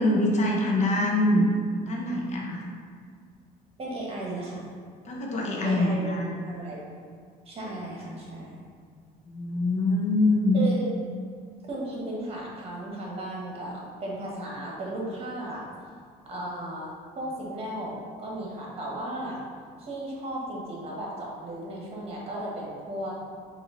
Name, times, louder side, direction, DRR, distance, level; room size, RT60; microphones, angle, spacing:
voice 1, 0.0-1.5 1.8-2.8 5.0-6.4 9.2-10.6, left 1 dB, 45° left, -1 dB, 0.8 m, -24 dB
voice 2, 3.8-4.6 5.6-6.0 6.4-6.9 7.4-8.6 10.5-10.9 11.6-15.6 16.2-19.4 19.8-23.1, right 1 dB, 35° right, -3 dB, 1.3 m, -35 dB
5.0 x 2.7 x 3.8 m, 2.1 s
cardioid pair, 110°, 17 cm